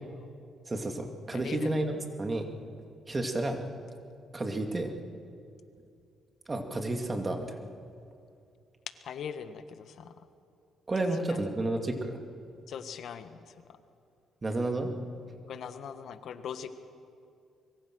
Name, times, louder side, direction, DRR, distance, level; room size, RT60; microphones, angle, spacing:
voice 1, 0.7-2.5 3.1-3.6 4.3-4.9 6.5-7.6 10.9-12.2 14.4-14.9, right 2 dB, 25° right, 4 dB, 2.4 m, -31 dB
voice 2, 1.3-1.7 9.0-10.1 11.3-11.4 12.7-13.5 15.5-16.7, left 7 dB, 65° left, 9 dB, 1.4 m, -41 dB
24.5 x 22.0 x 6.3 m, 2.4 s
cardioid pair, 90°, 0 cm